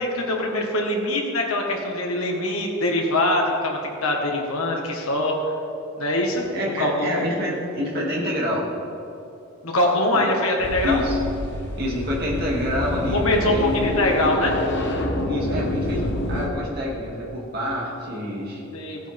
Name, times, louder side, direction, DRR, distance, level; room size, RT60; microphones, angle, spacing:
voice 1, 0.0-5.5 6.0-6.5 6.8-7.3 9.6-11.0 13.1-14.6 18.7-19.0, left 1 dB, 85° left, 0 dB, 1.8 m, -23 dB
voice 2, 6.5-8.7 10.1-10.3 10.8-11.2 11.8-13.7 15.3-18.6, left 1 dB, 45° right, -5 dB, 2.6 m, -27 dB
sound 1, 10.6-16.5, left 1 dB, 55° left, 1.2 m, -27 dB
15.0 x 9.0 x 3.6 m, 2.8 s
head